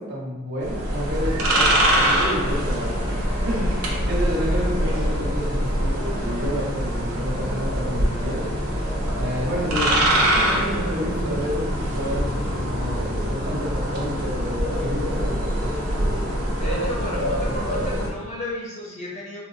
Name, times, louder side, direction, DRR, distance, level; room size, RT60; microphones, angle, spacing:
voice 1, 0.0-2.9 3.4-8.5 9.2-15.7, equal, 50° right, -5 dB, 0.9 m, -30 dB
sound 1, 0.6-18.1, equal, 90° right, 0.7 m, -24 dB
voice 2, 16.6-19.4, left 1 dB, 30° left, -4 dB, 0.6 m, -33 dB
4.2 x 2.1 x 2.6 m, 1.1 s
head